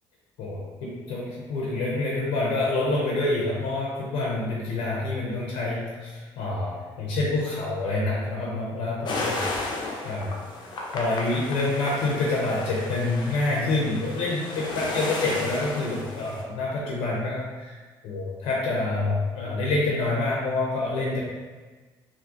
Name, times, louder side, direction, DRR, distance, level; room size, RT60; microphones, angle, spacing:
voice 1, 0.4-9.5 10.0-10.4 10.9-17.8 18.0-21.2, left 2 dB, 85° left, -4 dB, 0.8 m, -27 dB
sound 1, 9.1-16.4, left 2 dB, 50° left, 0.7 m, -34 dB
3.7 x 2.3 x 3.0 m, 1.3 s
cardioid pair, 95°, 9 cm